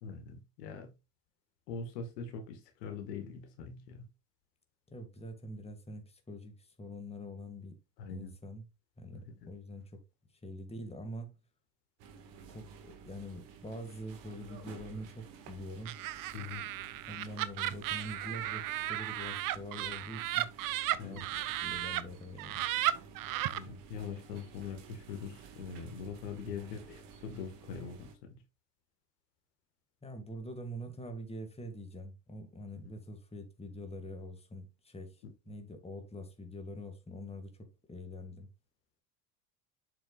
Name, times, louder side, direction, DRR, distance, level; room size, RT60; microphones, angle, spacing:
voice 1, 0.0-0.9 1.7-4.0 8.0-8.3 9.1-9.5 16.3-16.6 21.0-21.3 23.5-28.4 32.8-32.9, left 5 dB, 75° left, 1.8 m, -43 dB
voice 2, 4.9-7.8 8.1-8.7 9.0-10.0 10.4-11.4 12.5-15.9 17.1-20.6 21.0-22.7 26.4-26.7 30.0-35.2 35.5-38.5, equal, 10° left, 2.0 m, -45 dB
sound 1, 12.0-28.2, right 6 dB, 65° right, 2.0 m, -53 dB
Laughter, 15.8-22.0 22.4-23.6, right 15 dB, 45° right, 0.7 m, -35 dB
7.4 x 6.9 x 2.5 m
hypercardioid pair, 75°, 49 cm